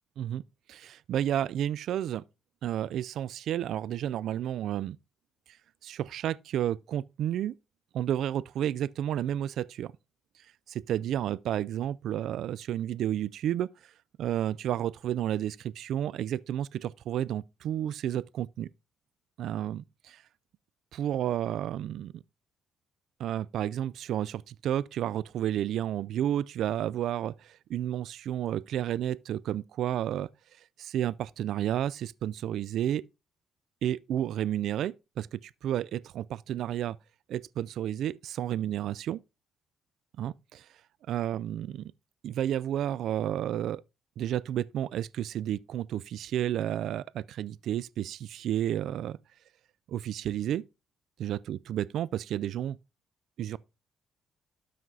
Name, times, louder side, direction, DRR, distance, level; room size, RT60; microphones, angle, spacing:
voice 1, 0.7-2.2 2.6-5.0 5.8-7.6 7.9-9.9 10.7-13.7 14.2-18.7 19.4-20.2 20.9-22.2 23.2-30.3 30.8-33.1 33.8-37.0 37.3-39.2 40.2-40.7 41.1-41.9 42.2-43.8 44.2-49.2 49.9-50.6 51.2-52.8 53.4-53.6, right 11 dB, 75° right, 0.3 m, -31 dB
12.5 x 5.9 x 2.7 m
cardioid pair, 90°, 0 cm